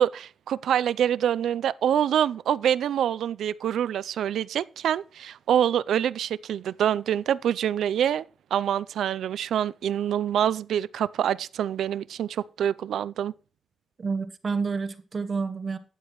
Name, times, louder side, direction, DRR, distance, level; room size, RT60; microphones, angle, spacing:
voice 1, 0.0-8.3 8.5-13.3, right 9 dB, 75° right, 0.4 m, -26 dB
voice 2, 14.0-15.8, right 4 dB, 30° right, 0.9 m, -29 dB
12.5 x 9.3 x 3.0 m
wide cardioid pair, 165°, 0 cm